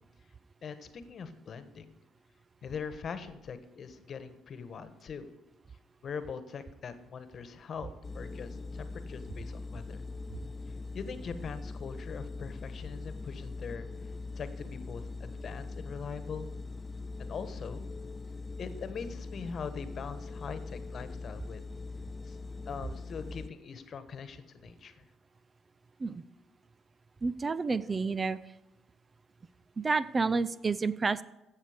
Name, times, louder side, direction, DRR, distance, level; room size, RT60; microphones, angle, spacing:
voice 1, 0.6-1.9 2.6-5.3 6.0-10.0 10.9-13.9 14.3-16.5 17.2-17.9 18.6-21.6 22.2-22.4 22.6-25.1, left 6 dB, 50° left, 11 dB, 1.3 m, -42 dB
sound 1, 8.0-23.5, left 3 dB, 30° left, 0.4 m, -41 dB
voice 2, 27.2-28.4 29.8-31.2, right 4 dB, 35° right, 14 dB, 0.5 m, -29 dB
15.5 x 6.6 x 5.0 m, 0.99 s
hypercardioid pair, 60°, 0 cm